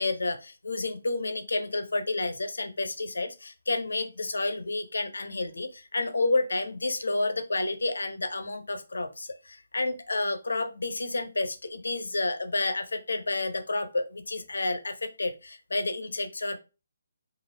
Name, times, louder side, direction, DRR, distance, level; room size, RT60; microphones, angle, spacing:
voice 1, 0.0-16.6, left 2 dB, 70° left, 8 dB, 0.6 m, -30 dB
3.2 x 2.4 x 2.7 m, 0.30 s
figure-of-eight pair, 145°, 0 cm